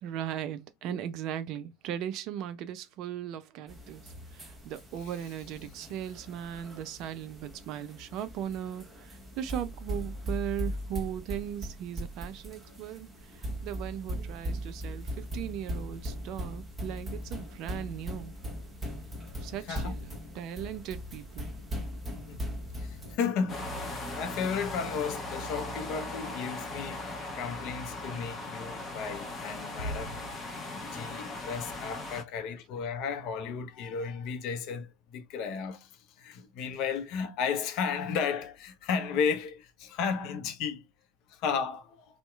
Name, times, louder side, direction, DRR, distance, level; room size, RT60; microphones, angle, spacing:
voice 1, 0.0-18.3 19.4-21.5, right 10 dB, 50° right, 0.3 m, -38 dB
sound 1, 3.7-23.2, equal, 10° right, 0.9 m, -39 dB
voice 2, 22.1-23.7 24.1-30.2 30.7-35.9 36.2-40.9 41.3-42.0, left 6 dB, 50° left, 0.5 m, -34 dB
sound 2, 23.5-32.2, left 2 dB, 25° left, 0.8 m, -38 dB
sound 3, 29.8-31.2, equal, 90° left, 0.8 m, -41 dB
2.7 x 2.0 x 2.3 m
figure-of-eight pair, 80°, 0 cm